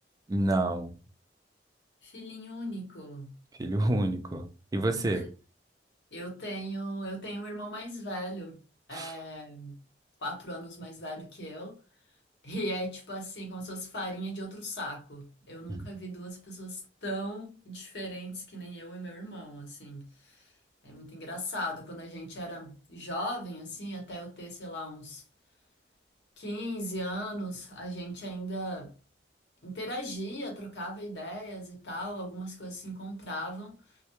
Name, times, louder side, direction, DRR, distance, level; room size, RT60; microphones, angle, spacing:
voice 1, 0.3-0.9 3.6-4.5 4.7-5.3 8.9-9.2 15.7-15.9, right 1 dB, 20° right, 0.3 m, -28 dB
voice 2, 2.0-3.3 6.1-8.6 8.9-9.8 10.2-11.8 12.4-20.4 20.8-25.2 26.4-28.9 29.6-33.7, equal, 75° left, 0.9 m, -38 dB
2.2 x 2.1 x 2.9 m
head